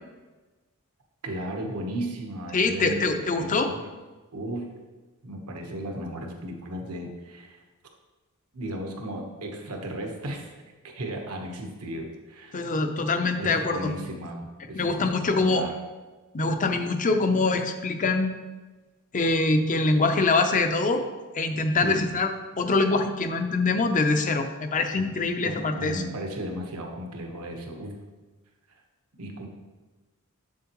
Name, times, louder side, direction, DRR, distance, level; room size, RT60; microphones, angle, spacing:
voice 1, 1.2-3.9 4.3-4.7 5.2-7.6 8.5-10.5 10.8-12.6 13.3-15.1 15.4-15.7 21.8-22.2 24.9-28.0 29.2-29.5, right 1 dB, 85° right, 2 dB, 1.2 m, -35 dB
voice 2, 2.5-3.7 12.5-13.9 14.8-15.6 16.3-18.3 19.1-21.1 21.3-22.3 22.6-26.0, left 3 dB, 35° left, 7 dB, 0.6 m, -24 dB
7.4 x 7.2 x 3.0 m, 1.2 s
head